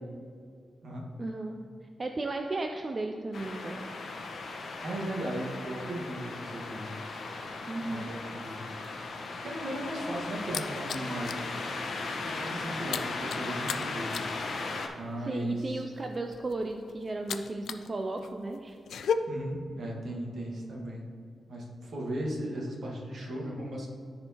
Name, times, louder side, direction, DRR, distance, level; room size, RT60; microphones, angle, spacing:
voice 1, 1.2-1.6 2.0-3.8 7.7-8.1 15.3-18.8, right 2 dB, 30° right, 4 dB, 0.4 m, -35 dB
sound 1, 3.3-14.9, left 3 dB, 60° left, 0.8 m, -37 dB
voice 2, 4.8-6.9 7.8-8.6 9.4-11.5 12.2-14.2 14.9-15.8 19.3-21.0 21.5-23.9, right 1 dB, 60° right, -2 dB, 1.5 m, -36 dB
sound 2, 9.7-11.5 11.8-12.1 12.3-17.9 18.2-19.1, left 7 dB, 80° left, 0.3 m, -36 dB
13.0 x 4.4 x 2.9 m, 2.2 s
wide cardioid pair, 125°, 0 cm